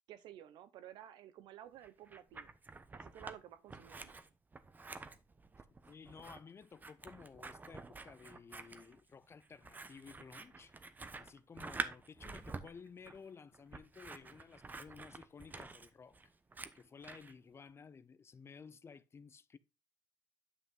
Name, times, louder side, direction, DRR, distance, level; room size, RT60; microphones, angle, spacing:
voice 1, 0.1-2.5 2.9-4.2, right 11 dB, 80° right, 0.9 m, -53 dB
Scissors, 1.8-3.4 3.7-17.3, right 3 dB, 25° right, 0.9 m, -48 dB
voice 2, 5.9-10.7 11.2-16.2 16.7-19.6, left 5 dB, 35° left, 0.6 m, -55 dB
9.6 x 5.5 x 3.8 m
cardioid pair, 95°, 8 cm